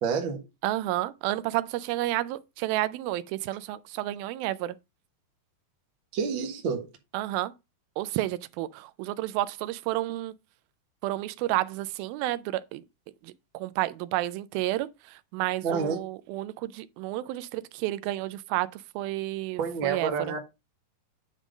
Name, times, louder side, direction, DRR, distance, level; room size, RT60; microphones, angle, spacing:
voice 1, 0.0-0.4 6.1-6.9 15.6-16.0 19.6-20.4, right 5 dB, 55° right, 1.4 m, -28 dB
voice 2, 0.6-4.8 7.1-7.5 8.0-10.3 11.0-12.8 13.2-20.1, right 16 dB, 85° right, 2.4 m, -31 dB
9.5 x 3.7 x 5.0 m
omnidirectional pair, 4.2 m